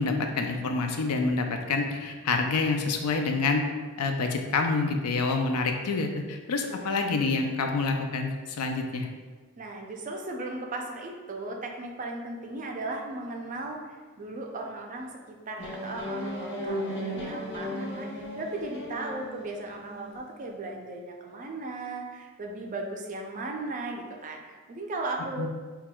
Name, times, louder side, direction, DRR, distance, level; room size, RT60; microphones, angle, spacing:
voice 1, 0.0-3.6 4.0-9.1 25.4-25.5, left 3 dB, 85° left, 4 dB, 0.4 m, -27 dB
voice 2, 6.7-7.1 9.6-25.5, right 2 dB, 35° right, 1 dB, 0.4 m, -37 dB
sound 1, 15.6-20.3, equal, 50° left, 1.3 m, -36 dB
5.8 x 2.3 x 2.2 m, 1.4 s
head